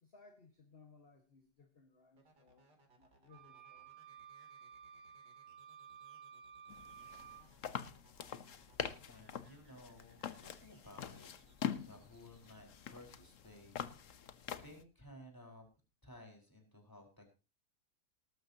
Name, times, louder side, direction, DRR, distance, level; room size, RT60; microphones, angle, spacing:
voice 1, 0.0-2.7 3.0-4.2, left 4 dB, 35° left, 5 dB, 1.7 m, -63 dB
sound 1, 2.2-12.6, right 2 dB, 75° right, 3.6 m, -69 dB
sound 2, 3.3-7.4, right 8 dB, 55° right, 5.5 m, -55 dB
sound 3, 6.7-14.8, left 8 dB, 55° left, 1.2 m, -45 dB
voice 2, 9.1-11.3 11.8-15.7 16.0-17.3, left 1 dB, 10° left, 3 dB, 4.4 m, -57 dB
19.0 x 13.0 x 2.8 m, 0.31 s
omnidirectional pair, 1.8 m